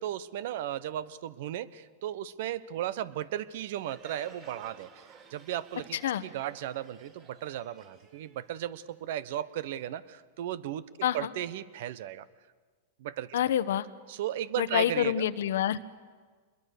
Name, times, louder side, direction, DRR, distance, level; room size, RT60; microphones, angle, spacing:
voice 1, 0.0-4.9 5.3-12.2 13.0-13.4 14.1-15.3, right 12 dB, 65° right, 17 dB, 1.0 m, -35 dB
Crowd, 3.7-9.1, right 5 dB, 35° right, 5.5 m, -54 dB
voice 2, 13.3-13.8 14.6-15.8, left 10 dB, 75° left, 15 dB, 1.0 m, -27 dB
26.0 x 22.0 x 6.8 m, 1.5 s
hypercardioid pair, 120°, 0 cm